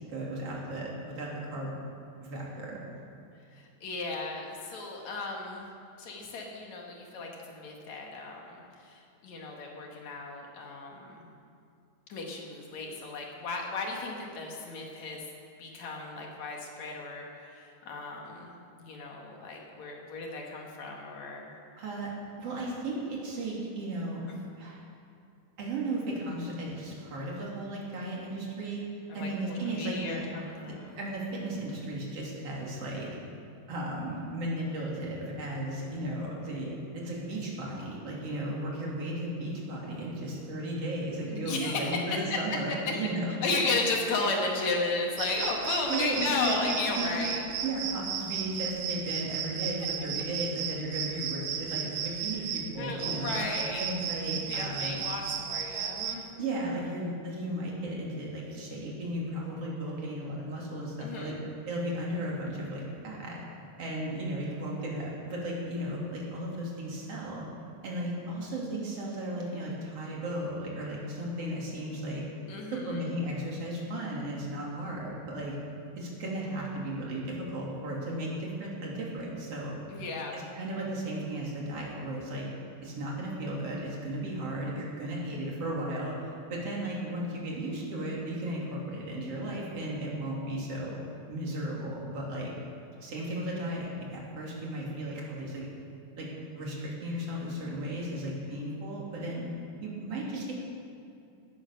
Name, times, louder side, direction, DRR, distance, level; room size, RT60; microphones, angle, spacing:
voice 1, 0.1-0.9 1.2-1.8 2.2-2.8 21.8-22.1 22.4-24.2 24.6-24.8 25.6-28.8 29.1-30.2 30.7-33.1 33.7-43.3 45.9-46.5 46.9-47.2 47.6-53.4 53.8-55.0 56.4-61.4 61.7-63.4 63.8-67.4 67.8-72.3 72.7-75.6 76.0-79.8 80.3-82.5 82.8-91.0 91.3-92.5 93.0-95.6 96.2-96.3 96.5-99.4 99.8-100.5, right 1 dB, 40° right, -3 dB, 3.7 m, -35 dB
voice 2, 3.5-5.7 6.0-11.3 12.1-15.2 15.6-21.5 29.1-31.0 41.3-42.4 43.4-47.4 52.8-54.1 54.5-56.3 61.0-61.4 72.5-73.0 79.9-80.4, left 3 dB, 55° left, 0 dB, 2.9 m, -34 dB
sound 1, 45.2-56.2, right 8 dB, 75° right, 1.7 m, -35 dB
18.0 x 10.5 x 6.7 m, 2.5 s
omnidirectional pair, 4.3 m